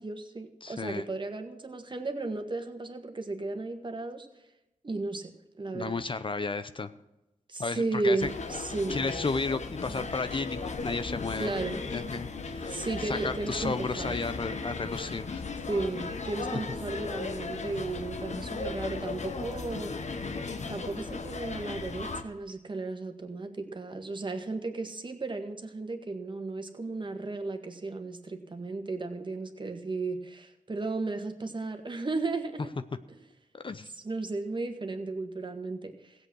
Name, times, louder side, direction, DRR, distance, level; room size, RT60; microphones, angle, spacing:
voice 1, 0.0-4.3 4.8-5.3 5.6-5.9 7.5-9.1 9.9-10.1 11.4-11.8 12.7-14.2 15.7-19.9 20.7-32.7 33.1-33.2 34.0-36.1, right 3 dB, 35° right, 6 dB, 1.7 m, -34 dB
voice 2, 0.6-1.0 5.7-6.9 7.6-8.3 8.9-11.5 11.9-15.4 33.5-33.9, left 4 dB, 40° left, 12 dB, 0.7 m, -33 dB
sound 1, 8.2-22.2, left 4 dB, 60° left, 1.2 m, -36 dB
16.0 x 7.9 x 6.3 m, 0.96 s
cardioid pair, 60°, 13 cm